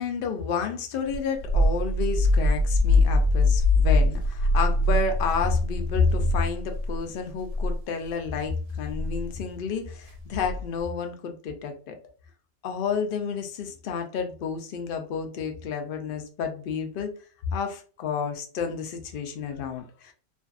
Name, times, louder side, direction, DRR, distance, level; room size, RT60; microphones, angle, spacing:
voice 1, 0.0-12.0 12.6-17.1 17.5-20.1, left 5 dB, 65° left, 5 dB, 0.5 m, -30 dB
sound 1, 1.1-7.0 7.4-7.7 8.9-9.2 10.4-10.8, left 1 dB, 90° right, 1.0 m, -23 dB
2.6 x 2.4 x 2.3 m, 0.39 s
omnidirectional pair, 1.4 m